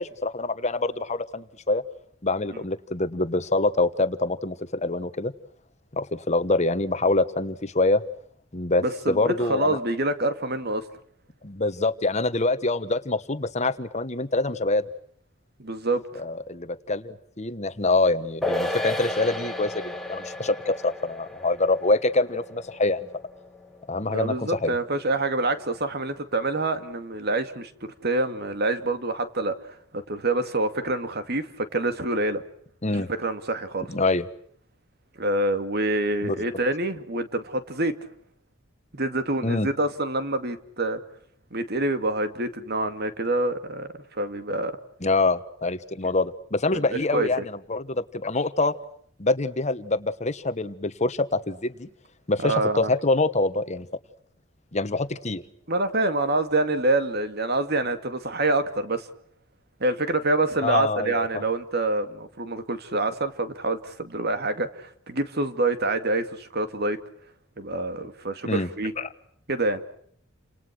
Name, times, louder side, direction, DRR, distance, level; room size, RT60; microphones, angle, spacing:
voice 1, 0.0-1.8 2.2-5.3 5.9-8.0 8.5-9.8 11.4-14.8 16.2-23.0 23.9-24.7 32.8-33.1 33.9-34.2 36.2-36.4 39.4-39.7 45.0-48.7 49.2-51.9 52.3-53.9 54.7-55.4 60.6-61.4 68.5-68.7 69.0-69.1, left 2 dB, 35° left, 11 dB, 1.3 m, -25 dB
voice 2, 8.8-10.8 15.6-16.2 24.0-32.4 33.2-33.9 35.2-37.9 38.9-41.0 41.5-44.7 47.1-47.3 52.4-52.9 55.7-59.1 59.8-67.0 67.6-68.9 69.5-69.8, right 2 dB, 55° right, 9 dB, 2.5 m, -26 dB
sound 1, 18.4-25.1 25.4-25.5, left 1 dB, ahead, 2.0 m, -34 dB
30.0 x 27.5 x 6.1 m, 0.64 s
head